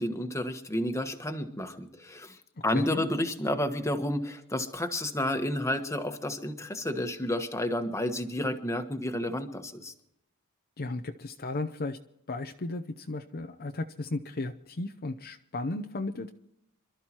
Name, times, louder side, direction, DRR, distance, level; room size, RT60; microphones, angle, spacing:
voice 1, 0.0-2.4 2.6-9.9, left 1 dB, 15° left, 6 dB, 1.3 m, -31 dB
voice 2, 2.7-3.1 10.8-12.0 12.3-16.3, left 2 dB, 45° left, 7 dB, 0.7 m, -35 dB
27.0 x 13.0 x 3.0 m, 0.80 s
head